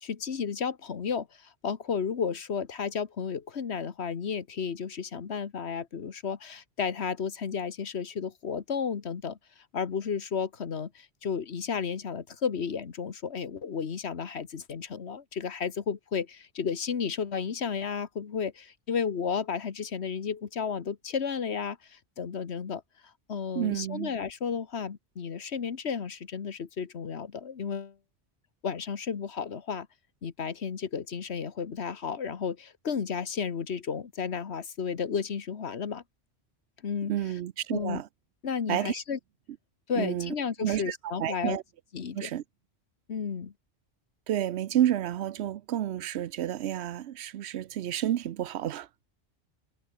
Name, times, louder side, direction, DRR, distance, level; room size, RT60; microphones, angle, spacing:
voice 1, 0.0-9.4 9.7-28.0 28.6-29.9 30.2-36.0 36.8-37.1 37.7-38.0 38.4-39.2 39.9-41.6 41.9-42.3 43.1-43.5, left 6 dB, 80° left, 1.6 m, -33 dB
voice 2, 23.5-24.1 37.1-38.1 38.7-39.0 40.0-40.3 40.6-41.6 42.1-42.4 44.3-48.9, right 11 dB, 80° right, 0.9 m, -30 dB
omnidirectional pair, 1.1 m